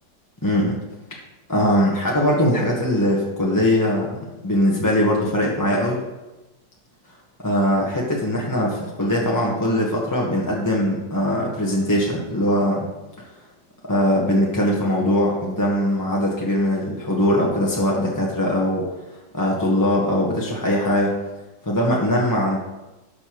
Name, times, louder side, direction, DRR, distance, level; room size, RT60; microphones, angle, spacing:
voice 1, 0.4-0.8 1.5-6.0 7.4-12.9 13.8-18.9 19.3-21.1 21.6-22.6, left 1 dB, 15° left, -3 dB, 0.9 m, -21 dB
12.0 x 6.6 x 3.0 m, 1.1 s
omnidirectional pair, 1.9 m